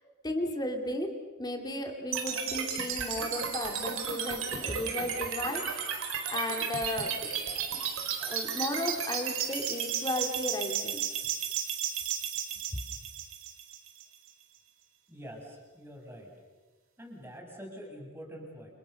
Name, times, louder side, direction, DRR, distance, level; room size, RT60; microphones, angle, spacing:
voice 1, 0.2-1.1 1.4-6.0 6.3-7.1 8.2-11.0, left 1 dB, 20° left, 3 dB, 3.0 m, -34 dB
sound 1, 2.1-14.1, right 8 dB, 75° right, 4.4 m, -34 dB
voice 2, 15.1-16.3 17.0-18.7, equal, 10° right, 1 dB, 6.5 m, -45 dB
29.5 x 29.0 x 6.7 m, 1.2 s
head